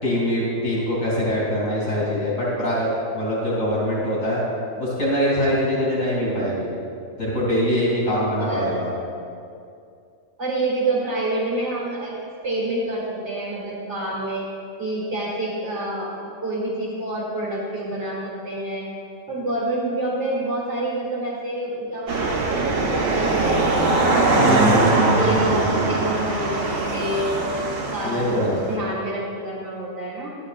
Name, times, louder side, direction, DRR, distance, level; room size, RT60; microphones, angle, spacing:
voice 1, 0.0-4.4 4.8-6.7 7.2-8.9 24.4-25.1 28.0-28.6, equal, 75° left, -7 dB, 2.8 m, -23 dB
voice 2, 8.4-8.8 10.4-12.1 12.4-14.5 14.8-16.1 16.4-18.9 19.3-24.0 24.7-27.4 27.9-30.3, right 1 dB, 60° right, -5 dB, 2.0 m, -27 dB
sound 1, 22.1-28.7, right 2 dB, 75° right, 1.4 m, -21 dB
11.5 x 9.1 x 2.4 m, 2.4 s
omnidirectional pair, 1.4 m